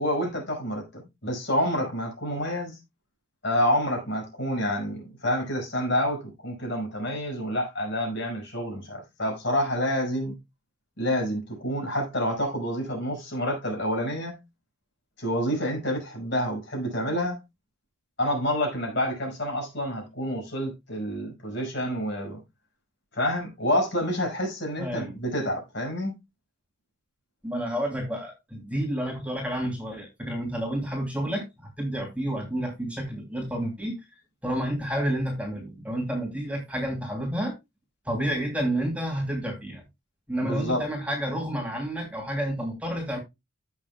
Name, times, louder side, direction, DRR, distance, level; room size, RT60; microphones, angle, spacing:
voice 1, 0.0-2.8 3.4-10.4 11.0-14.4 15.2-17.4 18.2-22.4 23.1-26.1 40.4-40.8, equal, 55° left, 5.7 m, -28 dB
voice 2, 24.8-25.1 27.4-34.0 34.4-37.5 38.1-39.8 40.3-43.2, right 1 dB, 5° right, 2.7 m, -30 dB
15.5 x 6.3 x 2.2 m
head